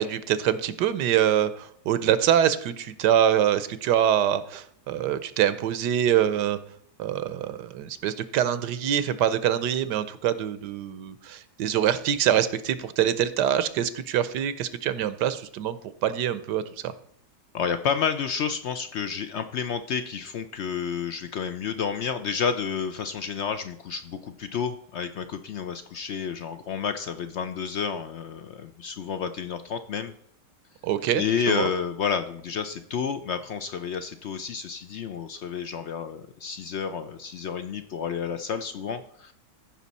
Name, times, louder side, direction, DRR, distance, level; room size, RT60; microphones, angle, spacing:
voice 1, 0.0-6.6 7.0-15.8 16.0-16.9 30.8-31.7, right 10 dB, 85° right, 14 dB, 1.3 m, -24 dB
voice 2, 17.5-30.1 31.1-39.3, left 6 dB, 75° left, 10 dB, 0.6 m, -30 dB
14.5 x 5.8 x 4.1 m, 0.68 s
omnidirectional pair, 1.8 m